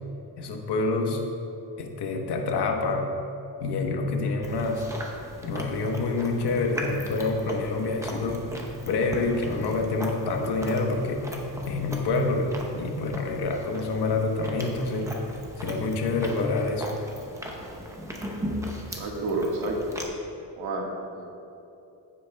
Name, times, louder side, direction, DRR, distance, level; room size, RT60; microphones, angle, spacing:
voice 1, 0.4-1.2 1.8-3.1 3.6-4.8 5.4-8.5 8.9-11.3 11.7-15.1 15.6-16.9, left 3 dB, 80° left, 3 dB, 1.2 m, -27 dB
Chewing mastication, 4.4-20.0, equal, 10° right, 0.8 m, -38 dB
voice 2, 18.9-20.0 20.6-21.3, right 2 dB, 65° right, -1 dB, 1.6 m, -30 dB
15.0 x 8.0 x 2.3 m, 2.9 s
wide cardioid pair, 175°, 40 cm